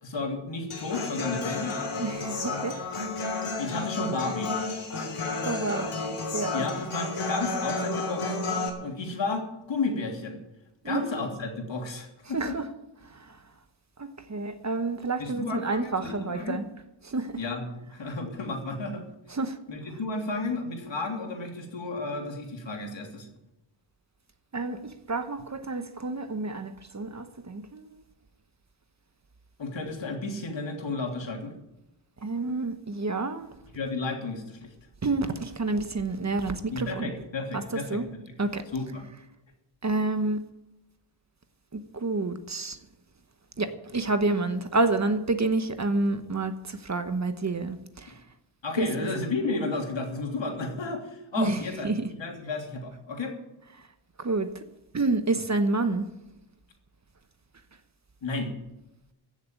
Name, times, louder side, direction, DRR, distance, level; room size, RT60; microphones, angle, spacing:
voice 1, 0.0-1.8 3.6-4.5 6.5-8.4 8.8-10.4 10.8-12.4 15.2-16.7 17.4-19.0 19.7-23.3 29.6-31.5 33.7-34.7 36.7-38.0 38.7-39.0 48.6-51.9 52.2-53.4 58.2-58.5, left 3 dB, 65° left, 3.3 m, -32 dB
Human voice / Acoustic guitar, 0.7-8.7, left 3 dB, 85° left, 3.4 m, -31 dB
voice 2, 2.0-2.8 5.4-5.9 6.3-6.6 10.8-11.0 12.3-12.7 13.0-13.4 14.0-16.6 17.0-17.4 19.3-19.6 24.5-28.0 32.2-33.5 35.0-37.1 37.5-38.1 38.4-38.6 39.8-40.4 41.7-42.8 43.6-48.2 48.8-49.1 51.4-52.1 53.8-53.9 54.2-54.6 54.9-56.0, right 3 dB, 35° right, 1.1 m, -29 dB
15.5 x 7.2 x 9.1 m
wide cardioid pair, 130°, 49 cm